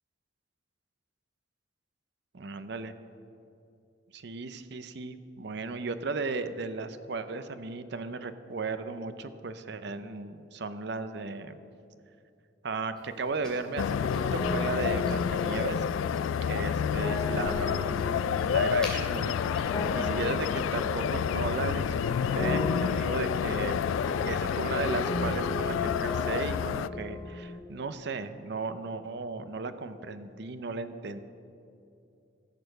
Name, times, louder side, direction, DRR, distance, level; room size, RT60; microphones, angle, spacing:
voice 1, 2.3-2.9 4.1-11.6 12.6-14.0 14.3-15.8 16.5-18.0 18.5-23.8 24.2-31.2, right 3 dB, 60° right, 11 dB, 0.6 m, -35 dB
sound 1, 12.9-19.6, left 1 dB, 5° left, 2.7 m, -47 dB
sound 2, 13.8-26.9, left 7 dB, 90° left, 0.3 m, -29 dB
sound 3, 13.9-27.6, left 2 dB, 25° left, 0.6 m, -37 dB
15.5 x 6.8 x 6.6 m, 2.6 s
head